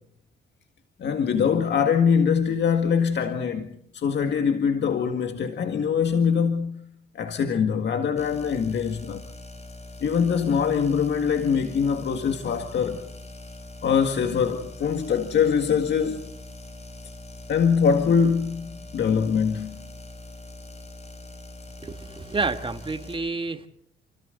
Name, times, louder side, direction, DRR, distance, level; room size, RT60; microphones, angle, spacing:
voice 1, 1.0-3.7 3.9-6.8 7.2-9.2 10.0-13.1 13.8-16.3 17.5-19.8, left 6 dB, 60° left, 2.0 m, -23 dB
sound 1, 8.2-23.2, left 2 dB, 35° left, 6.2 m, -42 dB
voice 2, 21.8-23.7, right 3 dB, 25° right, 1.7 m, -29 dB
29.5 x 24.0 x 4.0 m
cardioid pair, 90°, 20 cm